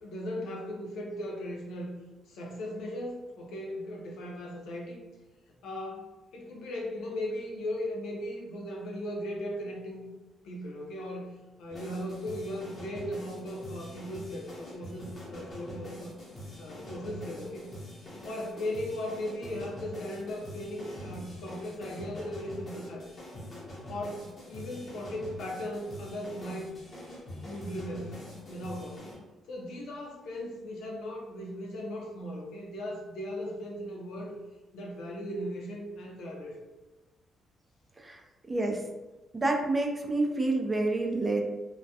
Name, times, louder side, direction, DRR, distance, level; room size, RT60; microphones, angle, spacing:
voice 1, 0.0-2.0 2.3-5.0 5.6-10.1 10.4-16.1 16.6-17.8 18.2-23.1 23.9-26.7 27.4-28.2 28.5-29.0 29.5-34.4 34.7-36.6, left 1 dB, 80° left, -1 dB, 0.5 m, -37 dB
sound 1, 11.7-29.2, left 1 dB, 45° left, 0.9 m, -44 dB
voice 2, 38.5-38.8 39.3-41.4, right 2 dB, 20° right, 1 dB, 0.4 m, -28 dB
2.2 x 2.2 x 2.7 m, 1.1 s
cardioid pair, 90°, 0 cm